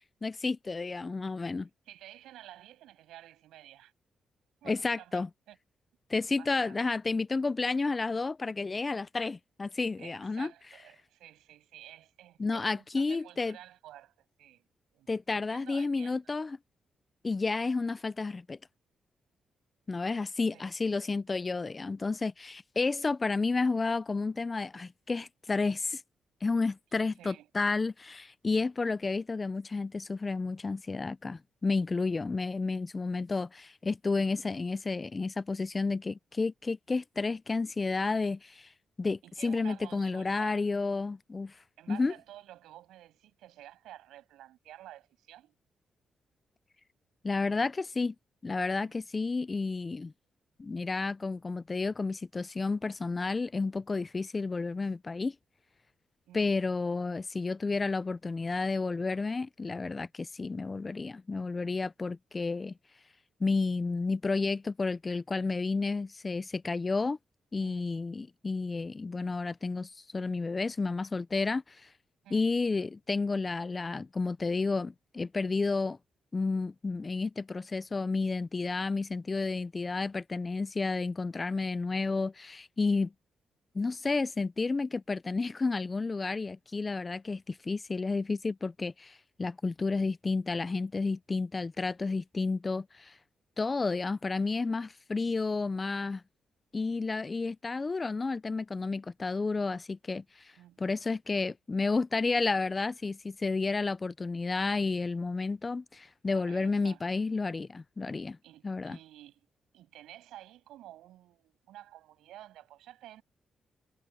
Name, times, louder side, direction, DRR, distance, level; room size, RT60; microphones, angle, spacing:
voice 1, 0.2-1.7 4.7-5.3 6.1-10.5 12.4-13.6 15.1-16.6 17.2-18.6 19.9-26.0 26.4-38.7 39.0-41.5 41.9-42.1 47.2-48.1 48.4-50.1 50.6-55.3 56.3-62.7 63.4-67.2 67.5-71.9 72.3-76.0 76.3-83.1 83.7-93.2 93.6-96.2 96.7-100.5 100.8-108.4 108.6-109.0, left 3 dB, 35° left, 0.8 m, -31 dB
voice 2, 1.9-3.9 4.6-5.6 6.4-6.9 10.0-14.6 14.9-16.2 20.5-20.6 27.2-27.5 39.2-40.7 41.8-45.5 48.8-49.0 56.3-56.5 67.6-67.9 72.2-72.5 100.6-100.8 106.3-107.0 108.4-109.5 109.7-113.2, right 13 dB, 85° right, 7.8 m, -51 dB
supercardioid pair, 50°, 0 cm